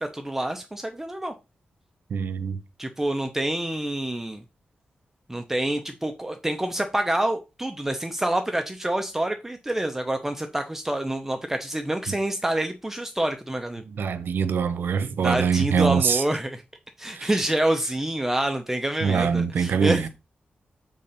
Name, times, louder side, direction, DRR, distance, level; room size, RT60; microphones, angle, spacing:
voice 1, 0.0-1.3 2.8-4.4 5.3-13.8 15.2-16.6 17.0-20.0, right 1 dB, 10° right, 0.7 m, -27 dB
voice 2, 2.1-2.6 12.1-12.2 13.9-16.2 17.1-17.3 19.0-20.1, right 6 dB, 80° right, 0.8 m, -24 dB
7.1 x 3.7 x 5.7 m
wide cardioid pair, 135°, 3 cm